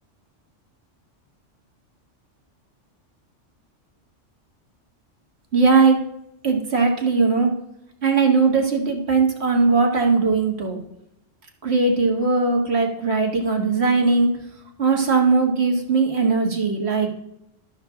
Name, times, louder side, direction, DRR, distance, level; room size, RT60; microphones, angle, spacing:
voice 1, 5.5-6.0 6.4-7.5 8.0-10.8 11.6-14.3 14.8-17.1, right 4 dB, 60° right, 2 dB, 1.8 m, -19 dB
12.0 x 6.1 x 3.6 m, 0.83 s
omnidirectional pair, 1.3 m